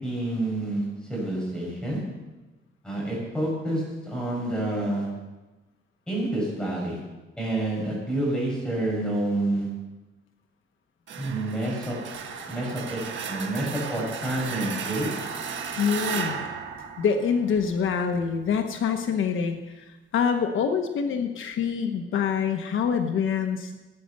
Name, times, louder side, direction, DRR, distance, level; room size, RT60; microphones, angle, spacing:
voice 1, 0.0-0.8 1.1-2.0 2.8-5.1 6.1-7.0 7.4-9.7 11.2-12.0 12.5-13.0 13.3-15.1, right 1 dB, 5° left, -4 dB, 7.0 m, -28 dB
sound 1, 11.1-17.8, right 6 dB, 65° right, 1.5 m, -34 dB
voice 2, 15.8-16.4 17.0-19.6 20.1-23.8, left 6 dB, 75° left, 5 dB, 1.2 m, -25 dB
18.0 x 9.1 x 6.7 m, 1.1 s
wide cardioid pair, 155°, 21 cm